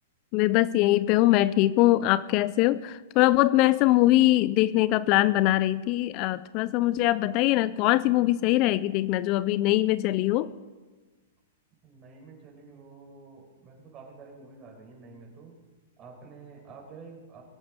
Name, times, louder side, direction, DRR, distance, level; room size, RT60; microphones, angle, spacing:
voice 1, 0.3-10.5, left 16 dB, 40° left, 17 dB, 0.4 m, -22 dB
voice 2, 11.8-15.6 16.0-17.4, right 4 dB, 30° right, 1 dB, 5.1 m, -48 dB
22.5 x 8.5 x 5.2 m, 1.3 s
hypercardioid pair, 125°, 0 cm